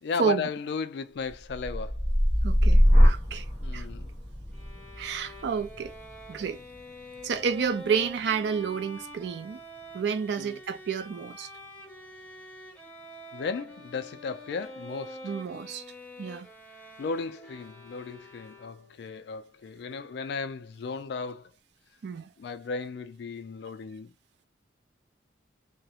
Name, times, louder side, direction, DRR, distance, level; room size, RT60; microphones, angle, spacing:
voice 1, 0.0-2.0 3.6-4.1 10.4-10.6 13.3-15.2 17.0-21.5 22.4-24.1, left 5 dB, 60° left, 0.3 m, -35 dB
sound 1, 1.3-9.3 9.8-10.3, equal, 35° right, 1.2 m, -25 dB
voice 2, 2.4-3.4 3.7-3.9 5.0-5.9 6.3-6.6 7.2-9.6 9.9-11.5 15.2-15.8 16.2-16.5 22.0-22.3, right 6 dB, 60° right, 0.3 m, -30 dB
Bowed string instrument, 4.5-19.0, equal, 5° left, 0.5 m, -46 dB
2.3 x 2.1 x 2.8 m
head